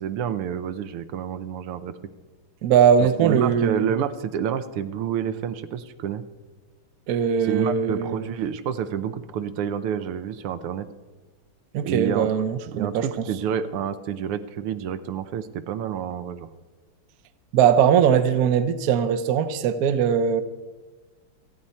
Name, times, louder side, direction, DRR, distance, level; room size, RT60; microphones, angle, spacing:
voice 1, 0.0-1.9 3.0-6.2 7.5-10.9 11.8-12.3 12.7-16.5, right 9 dB, 85° right, 1.7 m, -29 dB
voice 2, 2.6-3.9 7.1-8.3 11.7-13.3 17.5-20.4, right 8 dB, 60° right, 1.0 m, -20 dB
27.5 x 9.3 x 4.3 m
omnidirectional pair, 2.4 m